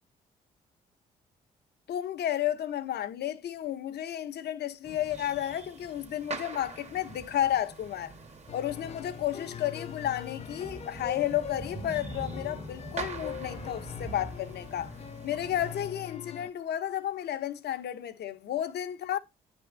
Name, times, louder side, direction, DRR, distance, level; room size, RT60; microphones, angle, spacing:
voice 1, 1.9-8.1 8.5-14.9 15.2-19.2, left 11 dB, 60° left, 0.8 m, -32 dB
sound 1, 4.8-15.9, right 3 dB, 35° right, 1.5 m, -43 dB
sound 2, 8.5-16.5, left 8 dB, 35° left, 0.4 m, -42 dB
10.0 x 3.5 x 3.9 m
hypercardioid pair, 50°, 19 cm